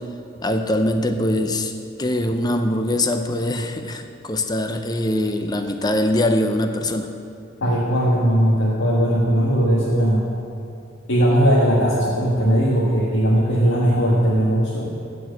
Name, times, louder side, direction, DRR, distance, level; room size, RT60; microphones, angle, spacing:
voice 1, 0.4-1.7 2.0-7.1, left 1 dB, 20° left, 7 dB, 0.6 m, -22 dB
voice 2, 7.6-10.3 11.1-14.9, equal, 75° left, -6 dB, 1.5 m, -18 dB
13.5 x 4.6 x 7.9 m, 2.5 s
head